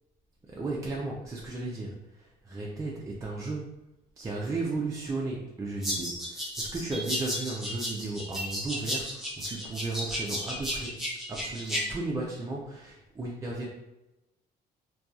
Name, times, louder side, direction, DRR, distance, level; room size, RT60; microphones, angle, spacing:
voice 1, 0.4-3.7 4.2-11.0 11.3-13.6, right 2 dB, 20° right, -4 dB, 0.4 m, -35 dB
sound 1, 5.8-11.8, equal, ahead, 0.7 m, -34 dB
2.7 x 2.3 x 2.3 m, 0.96 s
cardioid pair, 110°, 17 cm